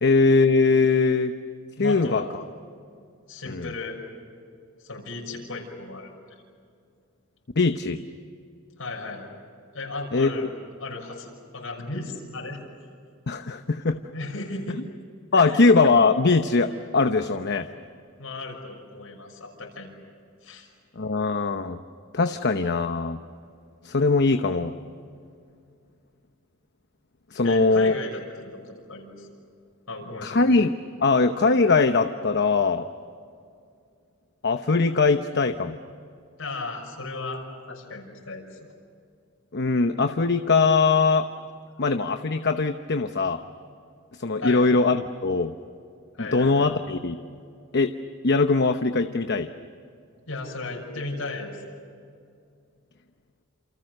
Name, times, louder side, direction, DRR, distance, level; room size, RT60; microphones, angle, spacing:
voice 1, 0.0-1.3 1.8-2.2 3.5-3.7 7.6-8.0 10.1-10.5 13.3-14.0 14.7-14.8 15.3-17.7 21.0-21.8 22.1-23.2 23.8-24.7 27.3-28.0 30.2-30.7 31.0-32.9 34.4-35.8 39.5-41.3 41.8-43.4 44.2-45.5 46.2-47.2 47.7-47.9 48.2-49.5, left 3 dB, 55° left, 7 dB, 0.9 m, -21 dB
voice 2, 1.8-2.3 3.3-4.0 4.8-6.1 8.8-9.3 9.7-10.5 10.8-12.6 14.1-14.8 15.3-15.6 18.2-19.9 20.4-20.7 27.4-28.2 28.5-29.3 29.9-30.4 36.4-37.4 37.7-38.6 44.4-44.7 46.2-46.7 50.3-51.8, left 3 dB, 80° left, -1 dB, 6.2 m, -35 dB
28.5 x 28.0 x 6.7 m, 2.3 s
head